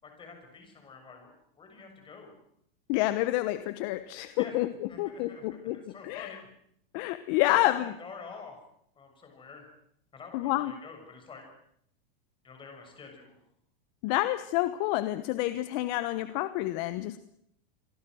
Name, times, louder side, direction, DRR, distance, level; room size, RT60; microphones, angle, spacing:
voice 1, 0.0-1.3 1.6-2.4 4.4-4.6 4.9-6.5 7.5-8.5 8.9-9.7 10.1-11.5 12.4-13.4, left 5 dB, 15° left, 4 dB, 6.7 m, -48 dB
voice 2, 2.9-5.8 6.0-6.3 6.9-7.9 10.3-10.7 14.0-17.2, left 16 dB, 45° left, 12 dB, 1.1 m, -28 dB
28.0 x 23.0 x 6.4 m, 0.73 s
supercardioid pair, 155°, 30 cm